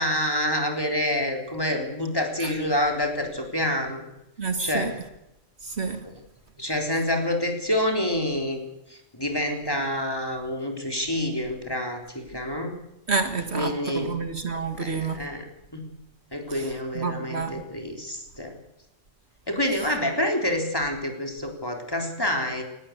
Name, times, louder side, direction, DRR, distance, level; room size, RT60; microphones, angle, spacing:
voice 1, 0.0-4.0 4.6-5.0 6.0-6.2 6.6-8.6 8.9-12.7 13.5-14.1 14.8-15.4 15.7-15.8 16.3-18.5 19.5-22.6, left 1 dB, 20° left, 3 dB, 3.8 m, -27 dB
voice 2, 4.4-4.9 5.8-6.0 13.1-15.2 16.9-17.5, right 4 dB, 60° right, 8 dB, 2.0 m, -28 dB
19.0 x 17.0 x 8.1 m, 0.88 s
omnidirectional pair, 1.3 m